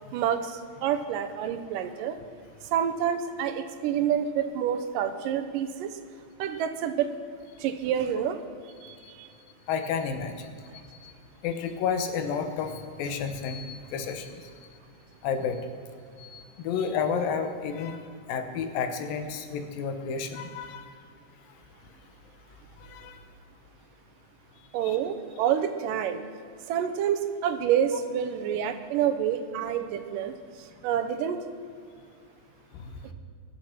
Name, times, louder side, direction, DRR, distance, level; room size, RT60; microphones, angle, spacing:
voice 1, 0.1-2.2 2.7-5.9 6.4-7.1 7.6-8.4 8.8-9.3 24.7-26.2 26.7-30.3 30.8-31.4, right 9 dB, 75° right, 9 dB, 2.3 m, -28 dB
voice 2, 9.7-10.5 11.0-11.1 11.4-14.3 15.2-15.6 16.2-18.0 18.3-20.8 22.9-23.2 24.8-25.0 32.7-32.9, left 6 dB, 80° left, 7 dB, 2.8 m, -31 dB
23.0 x 7.7 x 5.9 m, 2.3 s
omnidirectional pair, 4.1 m